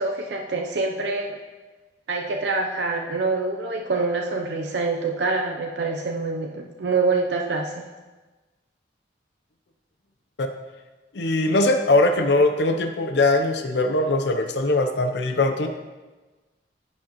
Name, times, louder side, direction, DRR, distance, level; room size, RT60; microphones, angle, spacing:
voice 1, 0.0-1.4 2.1-7.9, right 3 dB, 70° right, 1 dB, 0.6 m, -26 dB
voice 2, 11.1-15.7, left 2 dB, 70° left, 6 dB, 0.6 m, -21 dB
11.0 x 7.2 x 3.0 m, 1.2 s
head